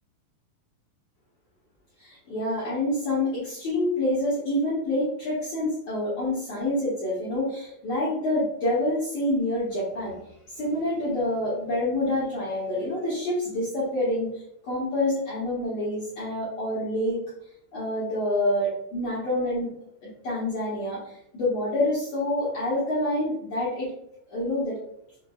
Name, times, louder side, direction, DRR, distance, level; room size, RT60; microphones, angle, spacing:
voice 1, 2.0-10.1 10.5-17.2 17.7-19.7 20.2-23.9 24.3-24.7, left 1 dB, 70° left, -10 dB, 1.6 m, -27 dB
6.7 x 2.6 x 2.3 m, 0.74 s
omnidirectional pair, 5.1 m